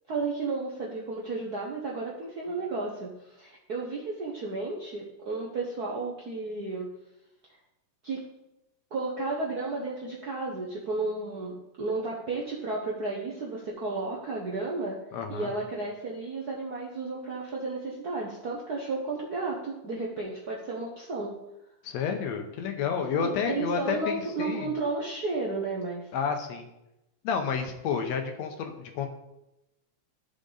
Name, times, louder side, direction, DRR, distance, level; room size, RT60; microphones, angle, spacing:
voice 1, 0.1-6.9 8.0-8.2 8.9-15.0 15.3-21.3 23.2-26.1, right 3 dB, 75° right, -3 dB, 0.8 m, -33 dB
voice 2, 15.1-15.5 21.8-24.7 26.1-26.7 27.2-29.1, left 6 dB, 70° left, 5 dB, 1.9 m, -30 dB
13.0 x 5.1 x 3.9 m, 0.90 s
omnidirectional pair, 3.4 m